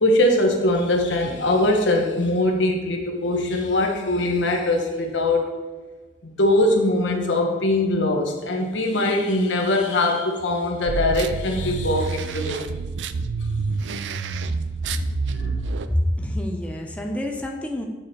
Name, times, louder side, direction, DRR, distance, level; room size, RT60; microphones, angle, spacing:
voice 1, 0.0-5.4 6.2-12.6 14.8-15.0 15.3-15.6, left 1 dB, 80° left, 2 dB, 1.2 m, -22 dB
sound 1, 10.9-15.9, right 4 dB, 70° right, 0.4 m, -28 dB
voice 2, 15.9-17.9, left 1 dB, 5° left, 1 dB, 0.7 m, -26 dB
8.6 x 4.8 x 4.3 m, 1.3 s
head